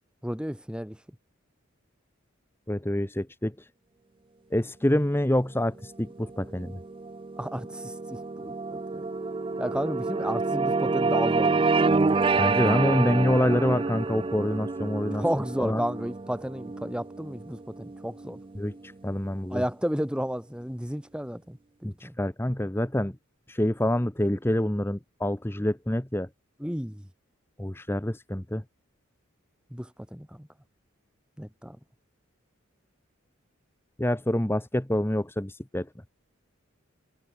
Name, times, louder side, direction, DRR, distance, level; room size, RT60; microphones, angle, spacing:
voice 1, 0.2-1.0 7.4-9.1 9.6-12.2 15.1-18.4 19.5-22.2 26.6-27.1 29.7-30.5 31.4-31.8, equal, 5° right, 1.7 m, -33 dB
voice 2, 2.7-3.7 4.5-6.8 12.4-15.2 15.6-15.8 18.6-19.6 21.8-23.1 23.5-26.3 27.6-28.6 34.0-35.9, left 1 dB, 10° left, 1.0 m, -26 dB
sound 1, 6.1-18.7, right 3 dB, 25° right, 0.4 m, -28 dB
head